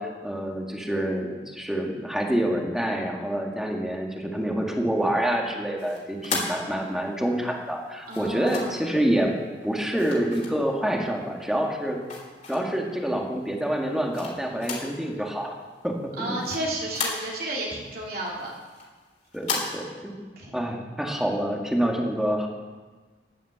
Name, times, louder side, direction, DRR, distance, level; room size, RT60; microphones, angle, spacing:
voice 1, 0.0-9.3 9.6-12.0 12.5-15.5 15.8-16.4 19.3-20.3 20.5-22.5, right 1 dB, ahead, 1 dB, 2.0 m, -27 dB
sound 1, 5.8-7.2 8.0-8.9 9.9-11.0 11.5-12.9 13.4-15.0 15.3-15.4 15.7-17.6 18.0-19.6, left 4 dB, 45° left, 3.8 m, -35 dB
voice 2, 8.1-8.7 16.2-18.5 20.4-20.5, right 1 dB, 55° right, -3 dB, 2.9 m, -32 dB
12.0 x 11.0 x 8.1 m, 1.3 s
head